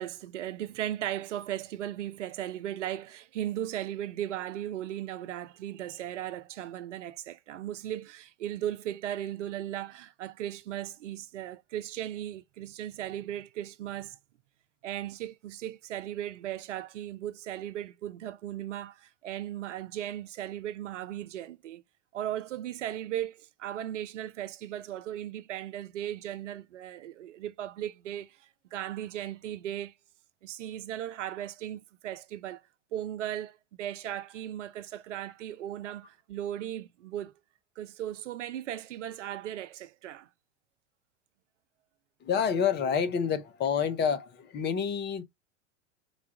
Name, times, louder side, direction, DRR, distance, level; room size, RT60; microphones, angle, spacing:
voice 1, 0.0-14.2 14.8-21.8 22.1-29.9 30.4-32.6 32.9-37.3 37.8-40.3, right 12 dB, 70° right, 0.6 m, -37 dB
voice 2, 42.2-45.2, left 7 dB, 25° left, 0.7 m, -28 dB
3.9 x 2.3 x 4.5 m
hypercardioid pair, 90°, 38 cm